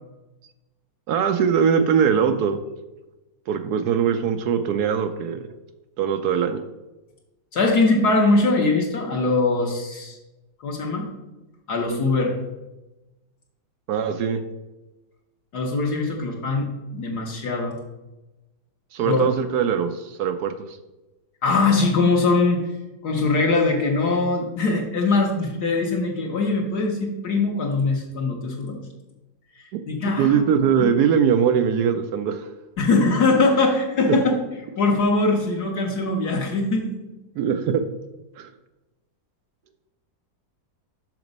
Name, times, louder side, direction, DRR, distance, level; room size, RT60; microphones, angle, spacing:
voice 1, 1.1-2.6 3.5-5.4 6.0-6.6 13.9-14.4 18.9-20.8 29.7-29.8 30.2-32.5 34.1-34.2 37.4-37.8 38.4-38.5, right 7 dB, 75° right, 9 dB, 0.9 m, -21 dB
voice 2, 7.5-10.2 10.6-11.1 11.7-12.4 15.5-17.7 19.0-19.3 21.4-22.6 23.0-28.8 29.6-30.4 30.8-31.0 32.8-34.4 34.8-36.9, left 3 dB, 60° left, 0 dB, 1.5 m, -22 dB
6.0 x 5.9 x 5.2 m, 1.0 s
omnidirectional pair, 2.1 m